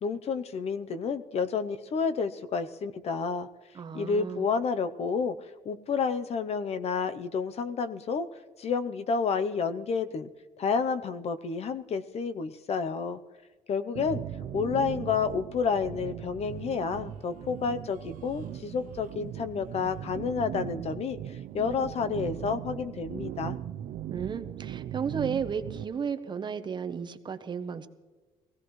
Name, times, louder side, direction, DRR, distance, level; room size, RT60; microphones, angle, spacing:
voice 1, 0.0-3.5 3.9-8.3 8.6-10.3 10.6-13.2 13.7-14.2 14.5-23.6, left 5 dB, 50° left, 11 dB, 0.7 m, -30 dB
voice 2, 3.7-4.5 24.1-27.9, right 6 dB, 35° right, 10 dB, 0.8 m, -34 dB
sound 1, 13.9-25.8, right 11 dB, 75° right, 0.5 m, -39 dB
21.0 x 16.5 x 3.1 m, 1.3 s
cardioid pair, 140°, 14 cm